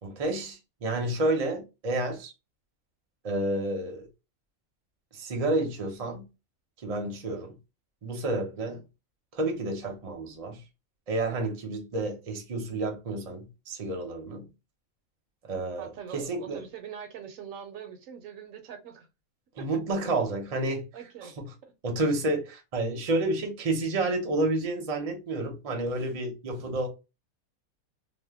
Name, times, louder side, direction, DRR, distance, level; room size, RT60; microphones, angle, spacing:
voice 1, 0.0-2.3 3.2-4.1 5.1-6.2 6.8-7.5 8.0-8.8 9.3-10.6 11.1-14.5 15.4-16.6 19.6-20.9 21.4-21.5 21.8-26.9, right 2 dB, 40° right, 0.6 m, -30 dB
voice 2, 15.8-19.1 19.6-19.7 20.9-21.3 21.6-21.7, right 8 dB, 70° right, 0.9 m, -43 dB
2.7 x 2.0 x 3.4 m
omnidirectional pair, 1.5 m